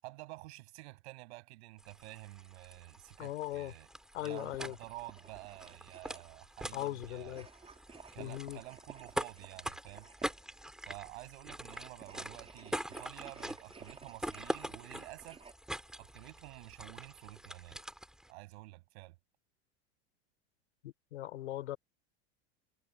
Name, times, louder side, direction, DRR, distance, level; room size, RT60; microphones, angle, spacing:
voice 1, 0.0-3.9 4.2-7.4 8.1-10.1 10.8-15.4 16.0-17.8 18.3-19.1, right 21 dB, 70° right, 6.8 m, -50 dB
sound 1, 1.8-18.3, right 1 dB, ahead, 3.1 m, -44 dB
voice 2, 3.2-3.7 4.1-4.8 6.7-7.5 8.2-8.6 20.8-21.8, left 14 dB, 85° left, 4.1 m, -39 dB
sound 2, 4.2-6.5 7.3-10.5 11.6-15.5, right 5 dB, 20° right, 3.1 m, -55 dB
supercardioid pair, 115°, 34 cm